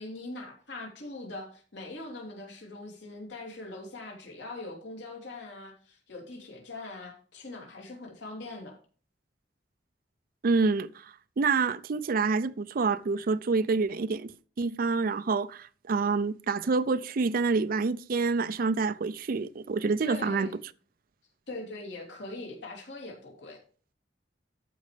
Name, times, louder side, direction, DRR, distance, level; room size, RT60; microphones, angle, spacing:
voice 1, 0.0-8.7 20.0-20.5 21.5-23.6, left 2 dB, 85° left, 2.9 m, -42 dB
voice 2, 10.4-14.3 14.6-20.5, right 4 dB, 55° right, 0.4 m, -27 dB
14.0 x 5.2 x 3.3 m
head